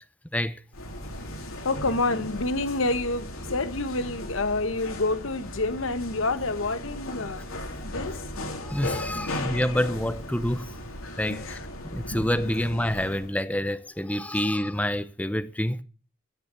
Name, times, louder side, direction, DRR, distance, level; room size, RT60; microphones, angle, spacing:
sound 1, 0.7-13.3, left 1 dB, 90° left, 4.5 m, -37 dB
voice 1, 1.2-7.4 7.8-8.2 9.1-9.3 11.3-11.6 12.1-12.6, left 2 dB, 75° left, 1.3 m, -29 dB
voice 2, 8.6-10.7 11.2-11.6 11.8-15.8, left 1 dB, 5° left, 0.8 m, -27 dB
14.0 x 7.5 x 8.2 m
head